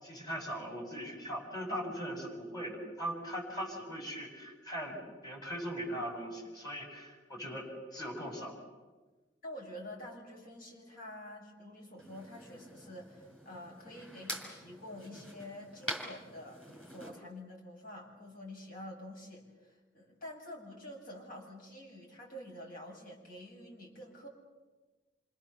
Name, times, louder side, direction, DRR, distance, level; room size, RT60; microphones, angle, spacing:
voice 1, 0.0-8.5, equal, 20° left, 0 dB, 7.9 m, -40 dB
voice 2, 9.4-24.3, left 1 dB, 50° left, 0 dB, 8.0 m, -48 dB
sound 1, 12.0-17.1, equal, 5° left, 5.4 m, -45 dB
28.0 x 27.0 x 7.3 m, 1.3 s
head